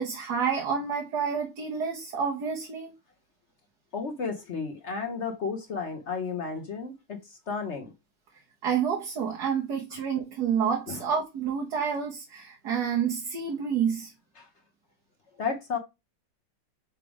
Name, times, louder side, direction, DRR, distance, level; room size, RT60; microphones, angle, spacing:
voice 1, 0.0-2.9 8.6-14.1, right 7 dB, 60° right, 1.6 m, -29 dB
voice 2, 3.9-7.9 10.9-11.0 14.4-14.5 15.4-15.8, left 5 dB, 50° left, 0.9 m, -33 dB
6.1 x 3.4 x 4.8 m
omnidirectional pair, 2.0 m